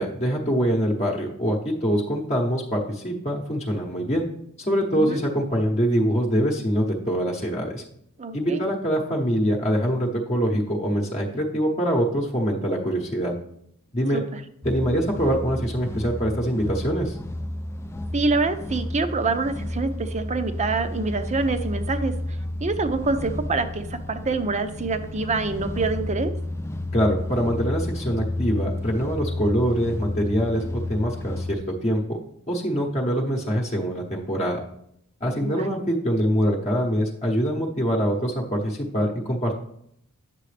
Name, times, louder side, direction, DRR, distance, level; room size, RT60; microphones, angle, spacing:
voice 1, 0.0-4.3 4.6-7.8 8.3-13.3 13.9-14.2 14.6-17.2 26.9-32.0 32.5-34.6 35.2-39.6, equal, 30° left, -1 dB, 0.9 m, -24 dB
voice 2, 8.2-8.6 14.1-14.2 18.1-22.1 22.6-26.3 35.4-35.8, right 3 dB, 35° right, 9 dB, 0.6 m, -26 dB
sound 1, 14.6-31.6, left 1 dB, 10° left, 0.4 m, -31 dB
9.0 x 6.7 x 3.3 m, 0.72 s
head